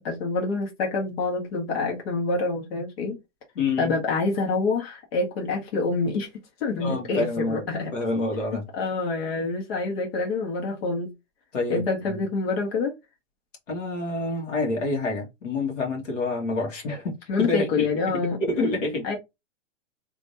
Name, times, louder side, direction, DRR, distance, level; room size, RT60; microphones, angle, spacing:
voice 1, 0.0-3.2 3.8-6.3 6.6-7.9 8.8-11.1 11.7-12.9 17.3-18.4 19.0-19.2, left 3 dB, 55° left, 1.8 m, -26 dB
voice 2, 3.6-3.9 6.8-7.6 7.9-8.7 11.5-12.2 13.7-17.9 18.1-19.2, left 2 dB, 85° left, 2.0 m, -28 dB
3.4 x 3.4 x 2.8 m
hypercardioid pair, 155°, 37 cm